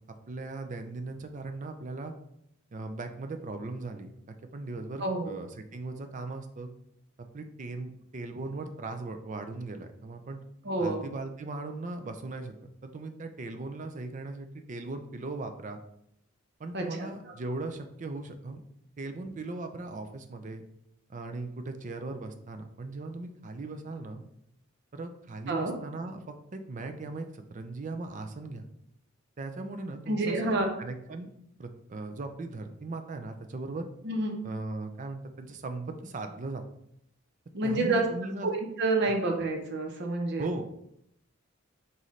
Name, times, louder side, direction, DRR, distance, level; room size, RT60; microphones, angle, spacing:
voice 1, 0.1-2.1 2.7-6.7 7.3-10.4 10.8-12.5 12.8-15.8 16.6-18.6 19.0-20.6 21.1-24.2 24.9-28.6 29.4-31.3 31.6-33.9 34.4-36.6 37.6-38.5 40.4-40.7, right 3 dB, 40° right, 6 dB, 0.4 m, -38 dB
voice 2, 5.0-5.3 10.6-11.0 16.7-17.1 25.5-25.7 30.1-30.7 34.0-34.4 37.5-38.1 38.4-40.4, right 2 dB, 55° right, 3 dB, 0.8 m, -28 dB
4.0 x 3.9 x 3.1 m, 0.75 s
head